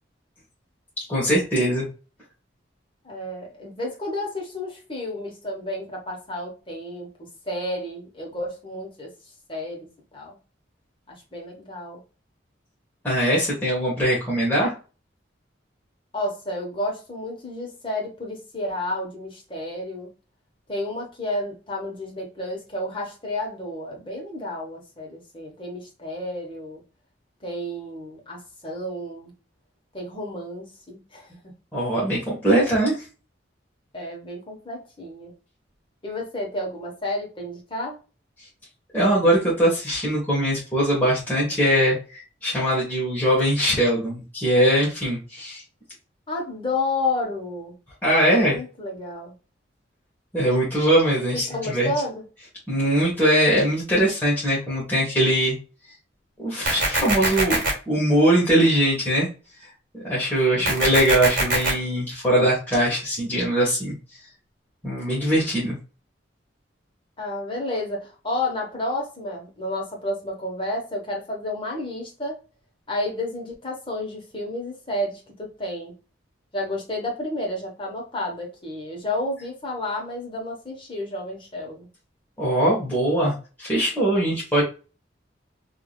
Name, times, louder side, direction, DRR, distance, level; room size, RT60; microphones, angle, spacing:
voice 1, 1.1-1.8 13.0-14.7 31.7-33.0 38.9-45.6 48.0-48.6 50.3-51.9 52.7-55.6 56.4-59.3 60.0-63.9 64.8-65.8 82.4-84.6, right 1 dB, 10° left, -7 dB, 1.2 m, -21 dB
voice 2, 3.0-7.1 7.5-9.1 9.5-9.9 10.1-10.4 11.1-12.0 16.1-20.1 20.7-26.8 27.4-29.3 29.9-31.3 33.9-35.3 36.0-38.0 46.3-47.7 48.4-49.3 51.3-52.2 60.5-60.9 67.2-72.4 72.9-75.9 76.5-81.9, left 1 dB, 25° left, -1 dB, 1.3 m, -31 dB
sound 1, 56.7-57.7 60.7-61.7, right 2 dB, 50° right, 1.7 m, -22 dB
3.5 x 2.8 x 2.3 m, 0.34 s
head